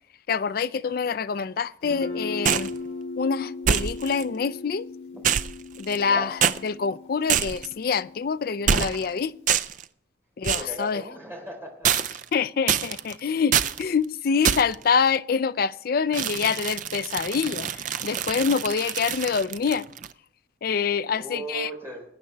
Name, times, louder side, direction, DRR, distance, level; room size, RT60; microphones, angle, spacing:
voice 1, 0.3-2.7 3.2-4.8 5.8-9.6 10.4-11.0 12.3-19.8 20.6-21.7, left 6 dB, 50° left, 0.3 m, -26 dB
Guitar, 1.8-9.5, left 3 dB, 70° left, 2.0 m, -38 dB
sound 1, 2.5-2.8 3.7-4.2 5.2-6.1 6.4-6.6 7.3-7.7 8.7-9.1 9.5-9.8 10.4-10.8 11.8-12.3 12.7-13.1 13.5-13.8 14.4-14.8 16.1-20.1, right 8 dB, 40° right, 0.4 m, -25 dB
voice 2, 10.5-11.9 13.3-13.4 21.1-22.0, right 1 dB, 10° right, 3.7 m, -37 dB
20.5 x 8.9 x 3.4 m
head